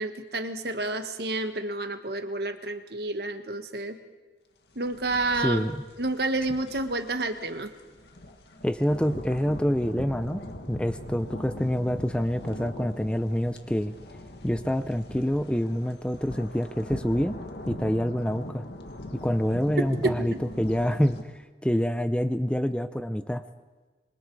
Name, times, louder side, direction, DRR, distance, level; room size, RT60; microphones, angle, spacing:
voice 1, 0.0-4.0 4.7-5.6 6.0-7.7 20.0-20.1, right 2 dB, 60° right, 8 dB, 1.6 m, -29 dB
sound 1, 4.8-21.2, left 1 dB, 65° left, 2.0 m, -41 dB
voice 2, 5.4-5.8 8.6-10.4 10.7-13.9 14.4-17.4 17.7-18.7 19.1-23.4, equal, 5° left, 10 dB, 0.6 m, -27 dB
26.0 x 23.5 x 4.8 m, 1.3 s
head